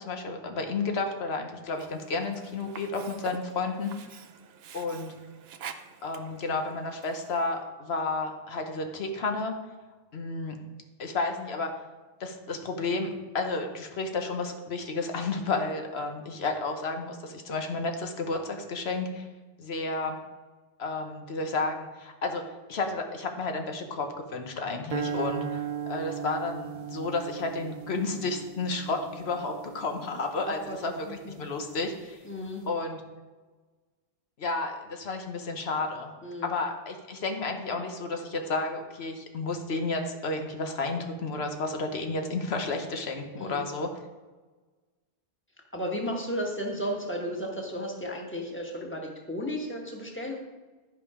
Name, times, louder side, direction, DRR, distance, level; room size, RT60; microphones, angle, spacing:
voice 1, 0.0-3.9 4.7-5.1 6.0-9.5 10.1-10.6 11.0-11.7 12.2-19.3 19.6-20.2 20.8-22.4 22.7-25.6 25.9-32.2 32.7-33.0 34.4-36.1 36.4-43.9, left 3 dB, 85° left, 4 dB, 1.2 m, -32 dB
Sink (filling or washing), 1.7-7.6, right 7 dB, 80° right, 0.9 m, -47 dB
sound 1, 24.9-31.2, right 7 dB, 50° right, 0.5 m, -37 dB
voice 2, 30.4-30.8 31.0-31.4 32.2-32.7 36.2-36.5 43.4-43.7 45.7-50.4, equal, 10° left, 0 dB, 1.4 m, -34 dB
11.5 x 5.4 x 4.9 m, 1.3 s
omnidirectional pair, 1.0 m